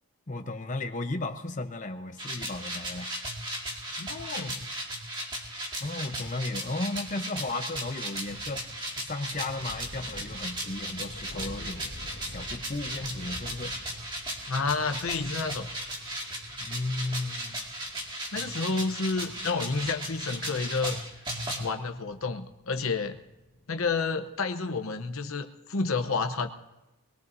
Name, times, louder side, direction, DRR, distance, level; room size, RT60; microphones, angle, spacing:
voice 1, 0.3-3.1 5.8-8.6 9.0-11.9 12.2-13.7 16.6-17.7, left 2 dB, 35° left, 7 dB, 0.8 m, -34 dB
sound 1, 2.2-21.6, right 1 dB, 20° right, 2.0 m, -36 dB
voice 2, 4.0-4.7 14.5-15.7 18.3-21.0 21.6-23.2 23.7-26.5, left 4 dB, 65° left, 6 dB, 0.9 m, -30 dB
sound 2, 8.2-24.0, left 1 dB, 80° left, 2.9 m, -48 dB
22.0 x 21.0 x 2.7 m, 0.99 s
head